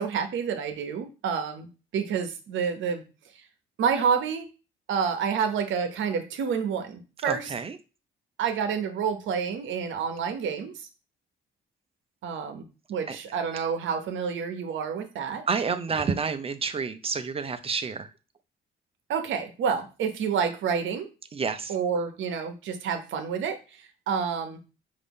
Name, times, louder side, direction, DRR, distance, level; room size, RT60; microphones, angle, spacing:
voice 1, 0.0-1.7 1.9-3.0 3.4-3.5 3.8-4.5 4.9-7.5 8.4-10.7 12.2-15.4 19.1-21.1 21.7-24.6, right 6 dB, 75° right, 7 dB, 0.8 m, -29 dB
voice 2, 7.2-7.8 13.1-13.2 15.5-18.1 21.3-21.8, right 5 dB, 30° right, 10 dB, 0.5 m, -29 dB
4.9 x 2.6 x 3.5 m, 0.31 s
cardioid pair, 90°, 20 cm